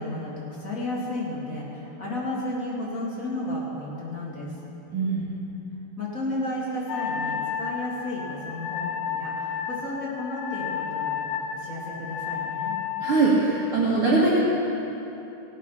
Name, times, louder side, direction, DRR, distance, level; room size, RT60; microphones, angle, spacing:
voice 1, 0.0-4.5 6.0-12.8, left 1 dB, 30° left, -6 dB, 1.6 m, -33 dB
voice 2, 4.9-5.2 13.0-14.4, right 3 dB, 80° right, -6 dB, 1.2 m, -21 dB
Wind instrument woodwind instrument, 6.9-13.2, left 7 dB, 90° left, 3.3 m, -31 dB
16.0 x 10.5 x 5.8 m, 3.0 s
omnidirectional pair, 5.0 m